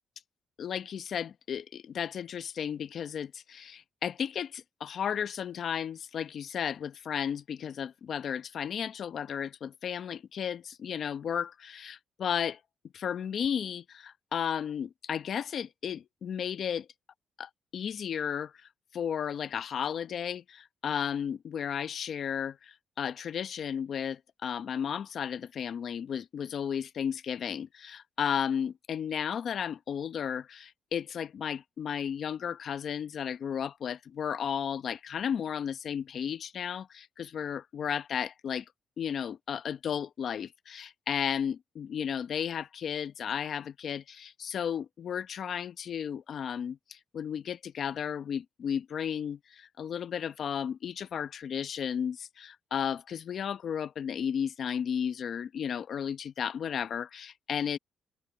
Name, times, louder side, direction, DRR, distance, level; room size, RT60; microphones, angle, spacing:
voice 1, 0.6-12.6 12.9-16.9 17.4-38.7 39.0-57.8, left 8 dB, 60° left, 1.0 m, -34 dB
open air
cardioid pair, 90°, 0 cm